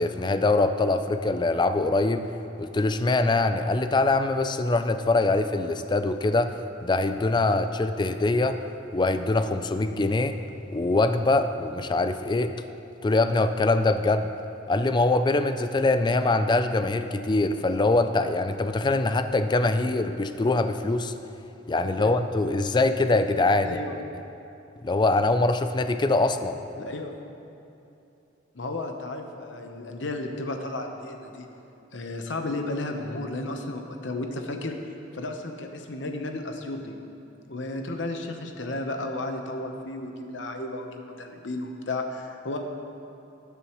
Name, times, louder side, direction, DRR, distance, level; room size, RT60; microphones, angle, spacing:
voice 1, 0.0-2.2 2.6-8.6 8.9-10.4 10.7-12.5 13.0-14.3 14.7-21.1 21.7-23.8 24.8-26.6, left 2 dB, 25° left, 9 dB, 0.4 m, -23 dB
voice 2, 23.6-24.0 26.7-27.1 28.5-31.5 31.9-34.8 35.1-37.0 37.5-42.6, left 2 dB, 75° left, 4 dB, 1.0 m, -33 dB
19.5 x 6.9 x 3.1 m, 2.8 s
head